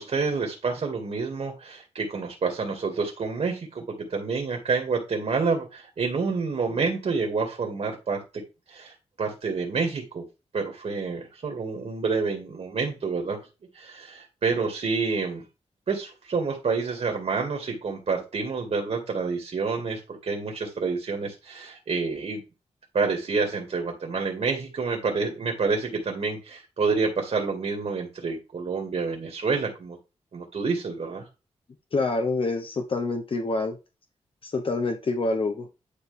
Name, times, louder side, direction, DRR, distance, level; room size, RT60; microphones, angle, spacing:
voice 1, 0.0-8.2 8.7-10.2 10.5-13.4 13.7-15.4 15.9-22.4 22.9-30.0 30.3-31.3, right 4 dB, 65° right, 3 dB, 2.1 m, -28 dB
voice 2, 31.9-33.8 34.4-35.7, left 3 dB, 50° left, 5 dB, 1.0 m, -26 dB
10.0 x 4.7 x 3.4 m, 0.28 s
wide cardioid pair, 90°, 12 cm